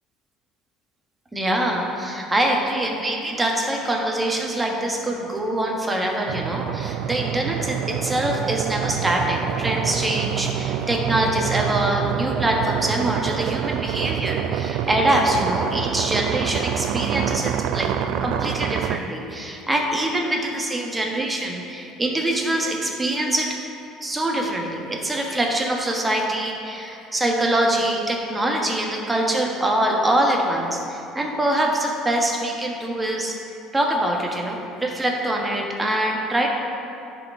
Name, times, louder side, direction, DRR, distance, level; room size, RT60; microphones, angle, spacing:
voice 1, 1.3-17.9 18.2-23.5 24.0-33.4 33.7-36.5, right 1 dB, 15° right, 0 dB, 1.3 m, -24 dB
sound 1, 6.3-19.0, right 9 dB, 65° right, 0.3 m, -26 dB
10.5 x 4.9 x 3.6 m, 2.7 s
hypercardioid pair, 75°, 0 cm